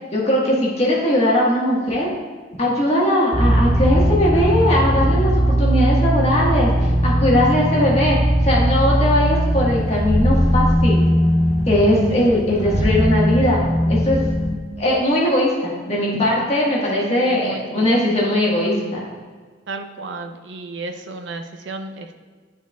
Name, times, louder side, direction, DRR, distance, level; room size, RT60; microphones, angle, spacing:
voice 1, 0.1-2.1 2.6-5.3 5.6-8.2 8.4-11.0 11.7-14.2 14.8-19.0, left 1 dB, 35° left, -5 dB, 1.5 m, -19 dB
sound 1, 3.3-14.5, equal, 15° right, 0.8 m, -19 dB
voice 2, 7.3-8.3 12.3-12.8 16.3-16.5 16.9-18.0 19.7-22.2, right 3 dB, 75° right, 6 dB, 0.6 m, -34 dB
10.5 x 4.5 x 2.3 m, 1.5 s
head